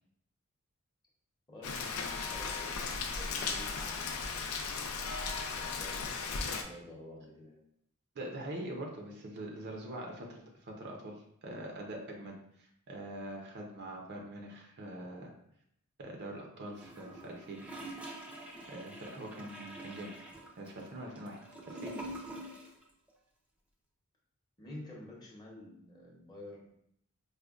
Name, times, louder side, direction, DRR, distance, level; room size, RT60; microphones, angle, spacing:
voice 1, 1.5-4.4 5.5-7.6 24.6-26.7, left 1 dB, 20° left, -4 dB, 0.8 m, -49 dB
Rain, 1.6-6.6, left 4 dB, 80° left, 0.4 m, -36 dB
voice 2, 8.1-15.3 16.0-17.6 18.7-20.1 20.6-21.4 21.7-21.9, right 1 dB, 50° right, 0 dB, 0.6 m, -43 dB
Gurgling / Toilet flush, 16.7-22.8 23.1-23.2, right 1 dB, 5° right, 0.4 m, -46 dB
4.8 x 2.1 x 2.4 m, 0.71 s
head